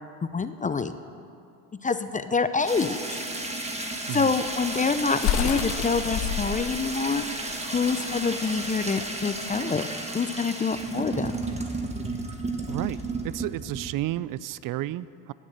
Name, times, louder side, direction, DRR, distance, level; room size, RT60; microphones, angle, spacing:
voice 1, 0.3-0.9 1.8-3.2 4.1-7.2 7.7-9.8 10.1-11.3, left 4 dB, 15° left, 11 dB, 0.5 m, -26 dB
sound 1, 2.7-14.0, right 2 dB, 15° right, 1.7 m, -33 dB
sound 2, 4.2-9.8, left 9 dB, 60° left, 1.0 m, -31 dB
voice 2, 12.7-13.0 13.2-15.3, right 15 dB, 45° right, 19 dB, 0.5 m, -31 dB
17.0 x 7.4 x 6.5 m, 2.6 s
hypercardioid pair, 70°, 47 cm